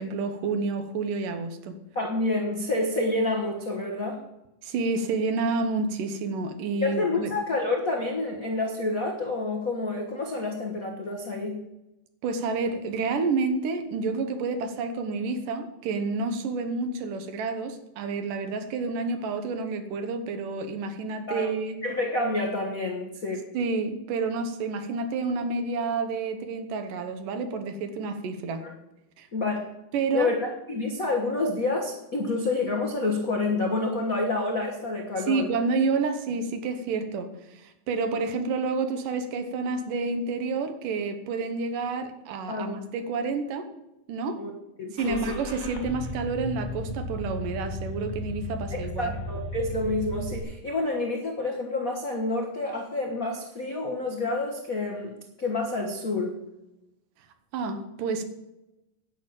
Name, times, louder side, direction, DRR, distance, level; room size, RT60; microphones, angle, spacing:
voice 1, 0.0-1.8 4.6-7.3 12.2-21.8 23.5-28.6 29.2-29.3 29.9-30.3 35.3-43.7 44.1-44.4 44.9-49.2 57.5-58.2, right 4 dB, 70° right, 8 dB, 2.5 m, -29 dB
voice 2, 1.9-4.2 6.8-11.6 21.3-21.5 21.8-23.4 28.6-28.7 29.3-29.6 30.1-35.5 42.5-42.7 44.4-44.5 44.8-45.4 48.7-55.1 55.4-56.3, left 2 dB, 80° left, 1 dB, 0.7 m, -28 dB
Car / Engine starting, 45.0-50.4, left 1 dB, 15° left, 0.7 m, -35 dB
10.5 x 7.1 x 8.8 m, 0.93 s
omnidirectional pair, 4.2 m